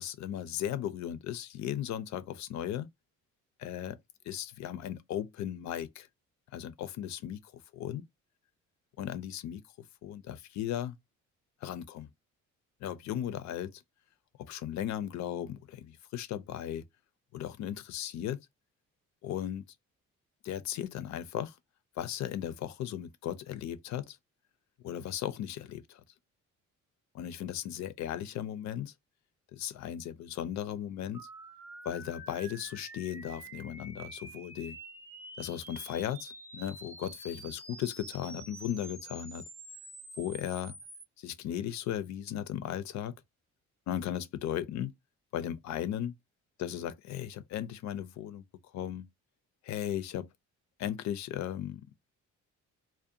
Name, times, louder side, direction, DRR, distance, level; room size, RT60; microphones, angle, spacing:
voice 1, 0.0-2.9 3.6-4.0 4.3-6.1 6.5-8.0 9.0-9.6 10.0-11.0 11.6-12.1 12.8-13.8 14.4-16.9 17.3-18.5 19.2-19.7 20.4-21.6 22.0-24.2 24.8-26.0 27.1-28.9 29.5-31.3 31.8-34.8 35.4-39.4 40.2-40.8 41.2-43.2 43.9-44.9 45.3-46.2 46.6-48.4 48.7-49.1 49.6-50.3 50.8-51.9, left 10 dB, 65° left, 0.4 m, -36 dB
sound 1, 31.1-41.0, right 2 dB, 10° right, 0.4 m, -48 dB
2.4 x 2.1 x 2.6 m
cardioid pair, 90°, 30 cm